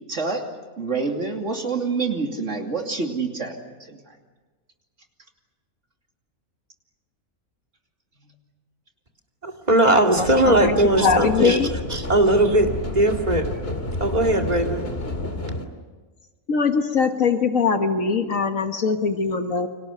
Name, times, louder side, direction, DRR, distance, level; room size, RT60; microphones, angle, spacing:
voice 1, 0.1-0.5 0.8-3.5 3.8-4.0, right 4 dB, 55° right, 3 dB, 3.1 m, -27 dB
voice 2, 9.4-13.5 14.0-14.8, right 1 dB, 30° right, 3 dB, 2.4 m, -19 dB
sound 1, 10.1-15.7, left 2 dB, 45° left, 2.5 m, -30 dB
voice 3, 10.5-11.7 15.1-15.2 16.5-19.7, left 5 dB, 70° left, 6 dB, 1.8 m, -22 dB
30.0 x 25.5 x 6.7 m, 1.3 s
omnidirectional pair, 1.5 m